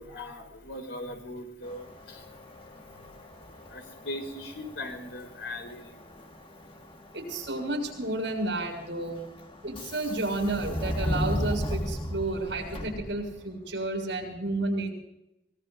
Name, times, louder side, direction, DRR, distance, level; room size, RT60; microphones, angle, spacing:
voice 1, 0.0-2.4 2.7-2.8 3.3-5.9, left 1 dB, 75° left, 4 dB, 3.9 m, -40 dB
Subway metro underground, 1.6-13.6, equal, 30° left, 1.7 m, -37 dB
voice 2, 7.1-9.2 9.6-14.9, right 2 dB, 65° right, 2 dB, 6.6 m, -31 dB
24.0 x 21.0 x 2.6 m, 0.87 s
head